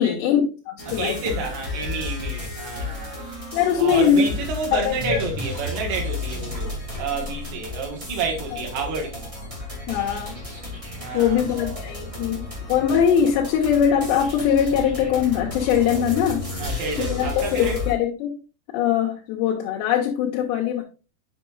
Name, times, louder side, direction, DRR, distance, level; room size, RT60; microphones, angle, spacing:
voice 1, 0.0-1.3 3.5-4.2 4.7-5.4 9.9-10.4 11.1-18.4 18.7-20.8, left 8 dB, 85° left, 3.1 m, -22 dB
sound 1, 0.8-17.9, left 2 dB, 20° right, 0.8 m, -33 dB
voice 2, 0.9-3.2 3.8-9.3 11.0-11.8 16.6-17.8, right 4 dB, 85° right, 3.7 m, -30 dB
8.8 x 6.3 x 2.4 m
omnidirectional pair, 4.9 m